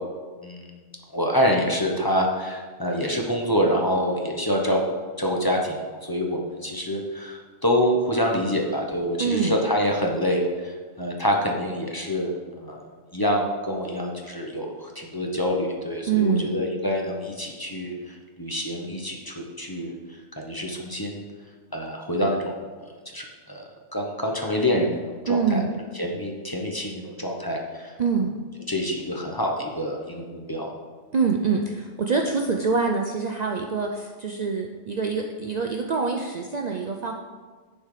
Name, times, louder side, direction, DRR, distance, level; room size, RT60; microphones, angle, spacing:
voice 1, 0.4-0.7 1.1-4.8 5.2-12.8 13.1-19.9 20.4-21.2 21.7-22.6 23.1-23.6 23.9-25.6 25.9-27.9 28.7-30.7, equal, 20° left, 0 dB, 0.7 m, -26 dB
voice 2, 9.2-9.6 16.1-16.5 25.3-25.8 28.0-28.3 31.1-37.1, right 5 dB, 80° right, 2 dB, 0.3 m, -25 dB
10.5 x 4.3 x 4.9 m, 1.5 s
omnidirectional pair, 1.4 m